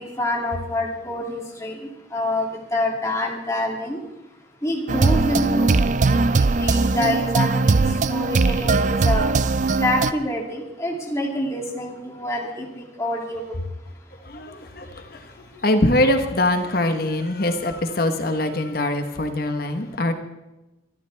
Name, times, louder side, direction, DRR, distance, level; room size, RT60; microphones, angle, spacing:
voice 1, 0.0-1.8 2.1-4.0 4.6-7.8 8.1-9.2 9.8-13.4, left 1 dB, 15° left, -1 dB, 2.7 m, -26 dB
sound 1, 4.9-10.1, right 3 dB, 40° right, 0.4 m, -20 dB
voice 2, 14.2-20.1, left 1 dB, 50° left, 7 dB, 1.2 m, -23 dB
24.0 x 13.0 x 3.5 m, 1.0 s
head